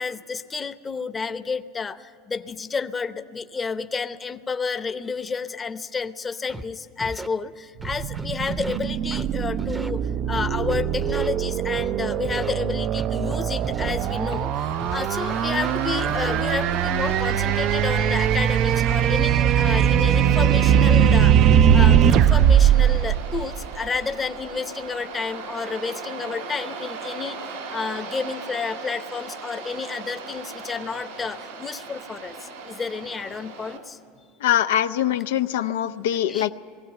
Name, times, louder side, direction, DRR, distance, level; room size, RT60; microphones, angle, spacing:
voice 1, 0.0-2.0 2.3-21.3 21.7-27.4 27.7-34.0 36.3-36.5, left 5 dB, 20° left, 11 dB, 0.7 m, -30 dB
Scratching (performance technique), 6.5-6.6 7.0-7.3 7.8-8.8 9.1-9.3 9.6-9.9 10.3-11.3 11.7-11.9 12.2-12.5 13.0-13.9 14.3-14.5 14.8-16.6, right 2 dB, 15° right, 0.7 m, -36 dB
sound 1, 7.8-24.0, right 9 dB, 50° right, 0.4 m, -20 dB
Waves surf, 14.0-33.8, right 4 dB, 90° right, 3.1 m, -37 dB
voice 2, 34.4-36.5, left 11 dB, 85° left, 10 dB, 0.4 m, -23 dB
19.5 x 15.5 x 8.9 m, 2.3 s
supercardioid pair, 110°, 0 cm